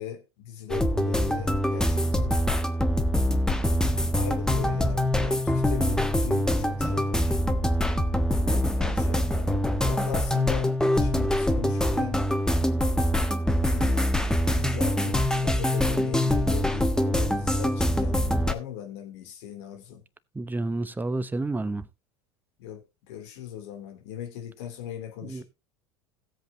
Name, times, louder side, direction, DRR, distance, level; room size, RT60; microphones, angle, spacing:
voice 1, 0.0-2.4 4.1-7.4 8.5-12.2 13.7-14.1 14.4-20.0 22.6-25.4, left 10 dB, 65° left, 3.1 m, -39 dB
sound 1, 0.7-18.5, left 1 dB, 5° left, 1.3 m, -24 dB
voice 2, 20.3-21.9 25.2-25.4, right 2 dB, 10° right, 1.0 m, -30 dB
17.0 x 7.9 x 2.8 m
hypercardioid pair, 80°, 15 cm